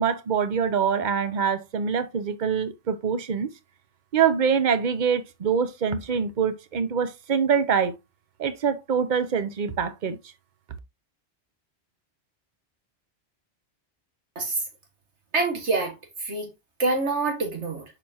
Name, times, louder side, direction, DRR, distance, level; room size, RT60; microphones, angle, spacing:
voice 1, 0.0-3.5 4.1-7.9 8.4-10.2, right 7 dB, 45° right, 0.9 m, -24 dB
voice 2, 15.3-16.0 16.2-16.5 16.8-17.8, right 3 dB, 85° right, 2.1 m, -26 dB
6.6 x 4.9 x 2.9 m
omnidirectional pair, 1.1 m